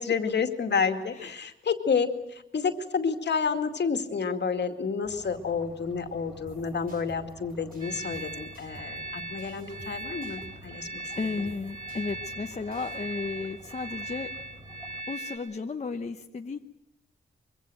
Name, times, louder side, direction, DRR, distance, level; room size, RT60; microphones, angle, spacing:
voice 1, 0.0-11.5, left 5 dB, 60° left, 6 dB, 2.3 m, -30 dB
sound 1, 5.0-15.0, equal, 5° right, 3.4 m, -50 dB
sound 2, 6.5-13.0, right 2 dB, 45° right, 5.5 m, -53 dB
sound 3, 7.8-15.4, right 1 dB, 20° right, 5.8 m, -39 dB
voice 2, 11.2-14.3 15.1-16.6, left 4 dB, 35° left, 4 dB, 1.0 m, -34 dB
24.5 x 24.0 x 7.8 m, 0.81 s
wide cardioid pair, 160°, 20 cm